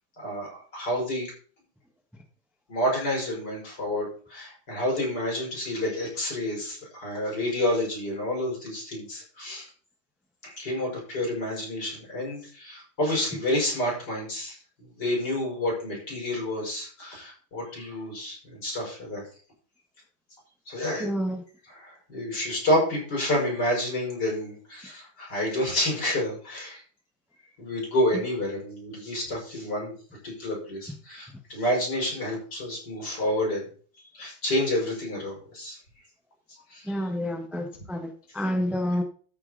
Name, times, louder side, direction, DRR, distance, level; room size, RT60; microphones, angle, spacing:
voice 1, 0.2-1.3 2.7-9.7 10.4-19.2 20.7-21.1 21.7-26.8 27.6-29.9 30.2-33.7 34.1-35.8 36.7-36.9, left 1 dB, 55° left, -2 dB, 6.2 m, -29 dB
voice 2, 21.0-21.4 36.8-39.0, equal, ahead, 4 dB, 1.1 m, -29 dB
13.5 x 6.9 x 4.1 m, 0.42 s
omnidirectional pair, 2.1 m